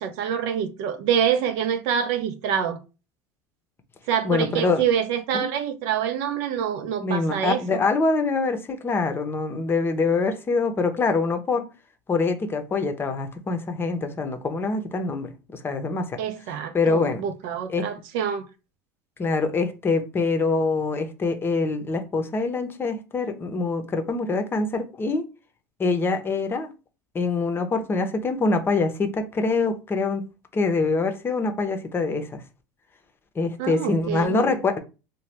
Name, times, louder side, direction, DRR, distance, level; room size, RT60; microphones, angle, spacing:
voice 1, 0.0-2.8 4.1-7.9 16.2-18.5 33.6-34.5, right 8 dB, 70° right, 0.5 m, -26 dB
voice 2, 4.2-4.8 5.3-5.5 7.0-11.7 12.1-16.2 16.7-17.2 17.7-17.9 19.2-25.2 25.8-26.7 27.1-30.2 30.5-32.4 33.3-34.8, left 3 dB, 25° left, 0.7 m, -24 dB
2.8 x 2.2 x 3.3 m
hypercardioid pair, 90°, 9 cm